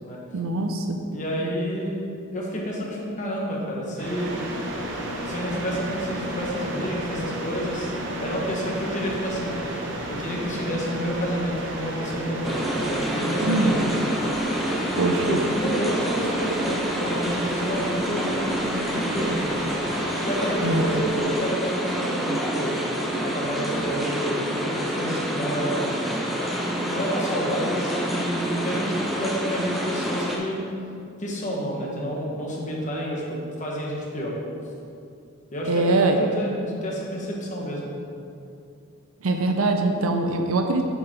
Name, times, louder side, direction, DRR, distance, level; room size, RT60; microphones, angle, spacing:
voice 1, 0.3-1.0 13.4-13.8 15.0-15.4 20.6-20.9 35.7-36.2 39.2-40.8, right 2 dB, 75° right, 4 dB, 0.6 m, -23 dB
voice 2, 1.1-2.0 2.3-4.3 5.2-7.9 8.2-9.6 10.1-13.9 15.1-18.6 18.9-19.4 20.2-22.8 23.2-26.2 26.9-30.6 31.2-34.4 35.5-38.0, equal, 35° left, -3 dB, 1.3 m, -29 dB
sound 1, 4.0-21.2, right 1 dB, 60° right, 1.0 m, -33 dB
sound 2, 12.4-30.4, equal, ahead, 0.8 m, -28 dB
6.9 x 4.7 x 5.1 m, 2.5 s
head